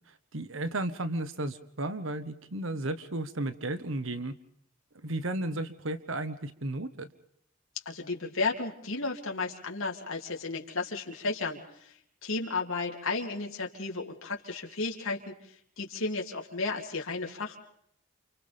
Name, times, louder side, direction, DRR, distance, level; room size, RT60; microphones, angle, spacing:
voice 1, 0.1-4.3 4.9-7.1, right 2 dB, 75° right, 11 dB, 1.4 m, -34 dB
voice 2, 7.8-11.9 12.2-15.3 15.8-17.6, left 3 dB, 80° left, 1 dB, 2.9 m, -33 dB
29.5 x 29.0 x 3.5 m, 0.70 s
head